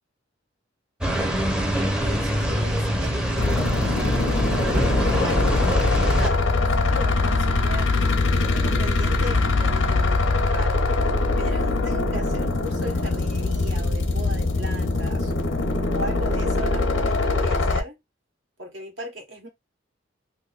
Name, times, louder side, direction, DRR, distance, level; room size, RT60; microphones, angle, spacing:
sound 1, 1.0-6.3, equal, 5° right, 0.6 m, -24 dB
voice 1, 2.0-4.5 5.1-5.8 6.1-7.9 8.4-10.9 11.4-15.3 15.9-18.0 18.6-19.5, equal, 70° right, 1.3 m, -37 dB
sound 2, 3.4-17.8, left 3 dB, 90° left, 0.8 m, -22 dB
2.9 x 2.6 x 3.9 m
head